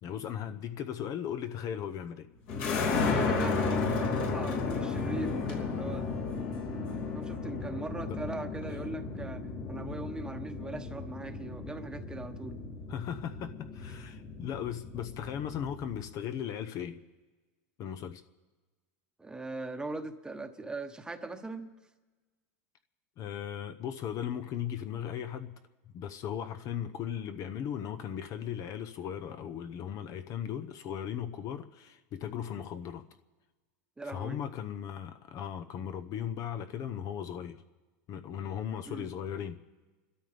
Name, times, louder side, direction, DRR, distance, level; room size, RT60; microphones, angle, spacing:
voice 1, 0.0-2.3 12.9-17.0 17.8-18.2 23.2-25.5 25.9-33.0 34.0-37.6 38.1-39.6, left 9 dB, 45° left, 0.8 m, -37 dB
sound 1, 2.5-16.1, left 4 dB, 60° left, 3.1 m, -34 dB
voice 2, 3.0-6.1 7.1-12.6 19.2-21.7 34.0-34.4 38.8-39.1, right 2 dB, 10° right, 1.1 m, -40 dB
29.0 x 13.0 x 3.4 m
supercardioid pair, 120°, 8 cm